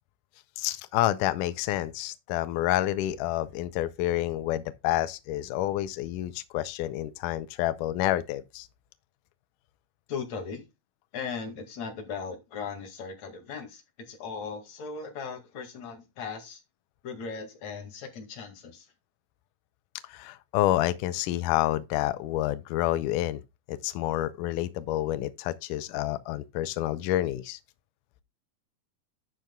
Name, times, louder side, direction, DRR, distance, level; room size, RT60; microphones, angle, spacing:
voice 1, 0.6-8.7 20.0-23.4 23.7-27.6, left 14 dB, 85° left, 1.8 m, -28 dB
voice 2, 10.1-10.6 11.1-16.6 17.0-18.9, left 5 dB, 50° left, 3.1 m, -38 dB
12.0 x 8.1 x 2.3 m
omnidirectional pair, 4.4 m